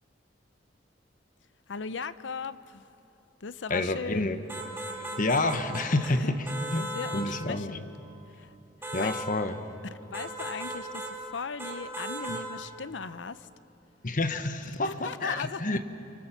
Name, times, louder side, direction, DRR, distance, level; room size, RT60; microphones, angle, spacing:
voice 1, 1.7-2.8 3.4-4.3 6.0-6.3 6.7-7.9 8.4-8.5 9.0-9.2 9.9-13.5 14.8-15.8, left 5 dB, 80° left, 14 dB, 0.7 m, -38 dB
voice 2, 3.7-4.4 5.2-6.4 6.7-6.8 7.1-7.7 8.9-9.5 12.3-12.4 14.0-15.8, left 2 dB, 45° left, 9 dB, 1.2 m, -28 dB
sound 1, 4.5-6.1 6.5-7.3 8.8-9.3 10.1-11.2 11.6-12.5, right 1 dB, 15° right, 2.6 m, -37 dB
30.0 x 24.0 x 6.0 m, 2.8 s
head